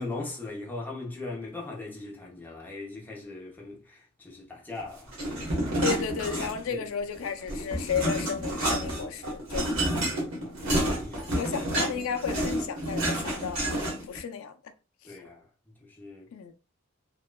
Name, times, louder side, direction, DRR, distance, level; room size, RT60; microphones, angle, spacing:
voice 1, 0.0-5.1 6.6-6.8 9.9-11.4 15.0-16.3, left 2 dB, 10° left, 0.7 m, -40 dB
sound 1, 5.1-6.8 7.2-14.2, right 1 dB, 80° right, 1.2 m, -29 dB
voice 2, 5.8-9.9 11.3-13.6 14.1-14.7 15.0-15.1 16.3-16.5, left 7 dB, 75° left, 0.4 m, -33 dB
3.0 x 2.1 x 2.2 m
head